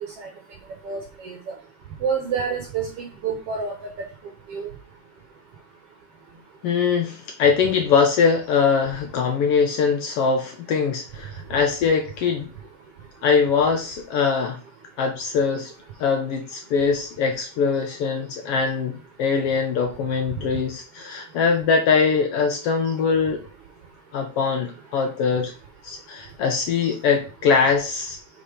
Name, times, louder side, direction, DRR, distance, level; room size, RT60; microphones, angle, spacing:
voice 1, 0.8-1.4 2.0-3.8 4.5-4.7 26.8-26.9, right 6 dB, 60° right, 3 dB, 1.8 m, -28 dB
voice 2, 6.6-12.5 13.2-14.6 15.0-15.7 16.0-23.4 24.1-25.5 25.8-28.2, left 5 dB, 75° left, 4 dB, 1.4 m, -22 dB
5.7 x 4.6 x 5.0 m, 0.35 s
omnidirectional pair, 3.5 m